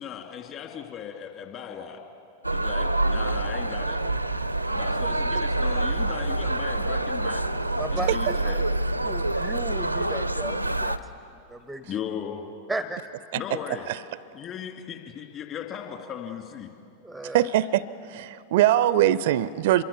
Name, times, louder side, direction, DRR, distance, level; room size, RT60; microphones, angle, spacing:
voice 1, 0.0-2.0 2.5-4.0 4.7-7.5 7.9-8.6 11.8-12.4 13.3-13.9 14.3-16.7, left 8 dB, 35° left, 3 dB, 2.9 m, -37 dB
sound 1, 2.4-11.0, right 2 dB, 90° right, 0.7 m, -26 dB
voice 2, 7.8-8.4 9.0-11.0 11.5-12.0 12.7-13.0 17.0-17.5, right 2 dB, 5° right, 12 dB, 0.7 m, -35 dB
voice 3, 17.3-19.8, right 13 dB, 55° right, 19 dB, 0.6 m, -22 dB
26.5 x 23.0 x 7.1 m, 2.5 s
figure-of-eight pair, 90°, 0 cm